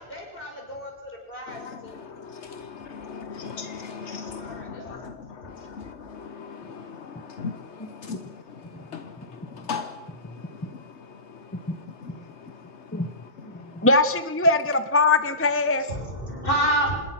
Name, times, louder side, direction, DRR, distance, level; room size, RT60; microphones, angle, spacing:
voice 1, 0.0-2.0 4.4-5.0 5.6-5.7 15.7-16.9, right 1 dB, 55° left, 7.2 m, -30 dB
voice 2, 1.5-5.1 5.4-7.6 8.0-8.2 8.9-9.0 9.7-9.9 12.0-12.1, left 5 dB, 85° left, 1.4 m, -37 dB
voice 3, 13.8-15.8, left 2 dB, 15° left, 0.9 m, -21 dB
27.0 x 20.0 x 6.1 m
omnidirectional pair, 1.1 m